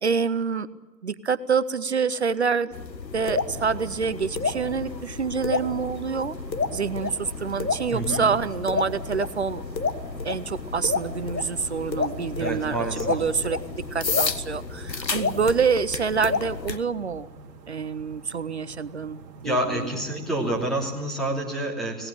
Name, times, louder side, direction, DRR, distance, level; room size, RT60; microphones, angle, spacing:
voice 1, 0.0-0.7 1.0-2.7 3.1-6.3 6.7-9.6 10.2-17.3 17.7-19.2 19.4-19.9, right 5 dB, 40° right, 15 dB, 0.8 m, -27 dB
sound 1, 2.7-16.8, left 4 dB, 80° left, 1.7 m, -30 dB
sound 2, 3.2-20.9, right 4 dB, 25° right, 2.8 m, -47 dB
voice 2, 7.9-8.3 12.4-13.2 19.4-22.1, right 1 dB, ahead, -3 dB, 2.9 m, -28 dB
24.5 x 19.0 x 8.9 m, 1.2 s
figure-of-eight pair, 145°, 50 cm